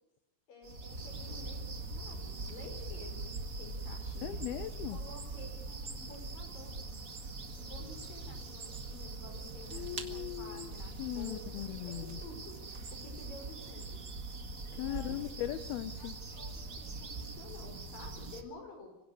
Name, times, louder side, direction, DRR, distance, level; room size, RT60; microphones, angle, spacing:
voice 1, 0.5-4.4 4.9-6.7 7.6-14.0 14.7-15.2 16.0-19.0, left 2 dB, 60° left, 4 dB, 6.9 m, -51 dB
sound 1, 0.6-18.4, right 3 dB, 55° right, 0.8 m, -42 dB
voice 2, 4.2-5.0 9.7-10.7 11.0-12.2 14.8-16.1, left 14 dB, 75° left, 12 dB, 2.7 m, -39 dB
25.5 x 17.0 x 6.6 m, 0.92 s
omnidirectional pair, 4.6 m